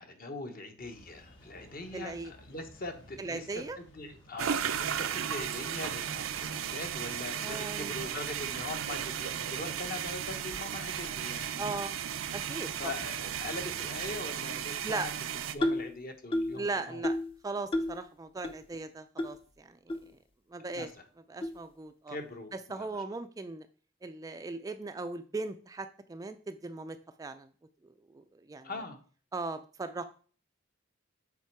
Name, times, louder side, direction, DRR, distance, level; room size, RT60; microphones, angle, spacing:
voice 1, 0.0-3.4 3.8-11.7 12.8-15.1 15.5-17.0 20.7-20.9 22.1-22.9 28.6-29.0, left 2 dB, 45° left, 6 dB, 1.1 m, -42 dB
sound 1, 0.8-14.2, equal, 65° left, 3.8 m, -56 dB
voice 2, 1.9-2.3 3.2-3.8 7.4-8.1 11.6-12.0 12.3-12.9 14.8-15.1 16.5-17.2 17.4-20.0 20.5-20.9 21.3-22.2 22.5-23.7 24.0-27.5 27.8-28.7 29.3-30.0, right 3 dB, 15° right, 9 dB, 0.3 m, -38 dB
sound 2, 4.4-15.5, right 9 dB, 80° right, 0.5 m, -35 dB
sound 3, 15.6-15.9 16.3-16.6 17.0-17.3 17.7-18.0 18.4-18.5 19.2-19.3 19.9-20.0 20.7-20.8 21.4-21.6, left 1 dB, 25° left, 0.7 m, -30 dB
7.2 x 4.3 x 4.6 m, 0.42 s
head